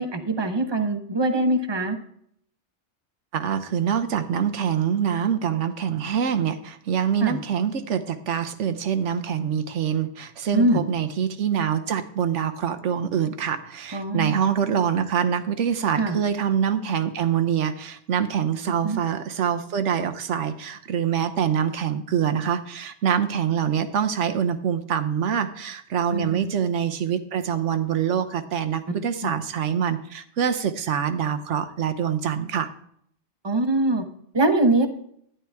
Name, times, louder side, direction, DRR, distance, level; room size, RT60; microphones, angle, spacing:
voice 1, 0.0-2.0 7.2-7.4 10.5-10.8 13.9-14.3 16.0-16.2 18.8-19.0 26.1-26.5 29.2-29.3 33.4-34.1 34.3-34.9, right 2 dB, 25° right, 7 dB, 0.9 m, -22 dB
voice 2, 3.3-32.7, right 8 dB, 85° right, 9 dB, 1.2 m, -25 dB
11.5 x 10.0 x 3.5 m, 0.67 s
omnidirectional pair, 1.2 m